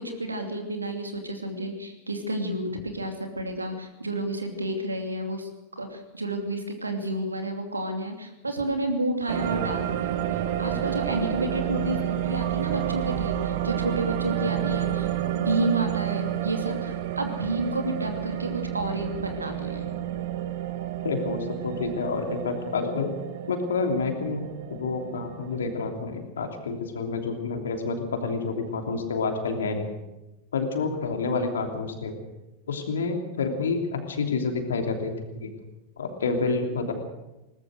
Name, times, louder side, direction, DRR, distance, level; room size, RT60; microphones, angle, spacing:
voice 1, 0.0-10.1 10.6-19.9, right 1 dB, 80° right, 5 dB, 2.7 m, -30 dB
sound 1, 9.3-25.9, right 12 dB, 55° right, 1.6 m, -30 dB
voice 2, 21.0-23.1 23.5-29.9 30.5-32.2 32.7-35.5 36.0-36.9, left 4 dB, 65° left, 4 dB, 3.1 m, -28 dB
21.0 x 19.5 x 6.5 m, 1.0 s
figure-of-eight pair, 90°, 0 cm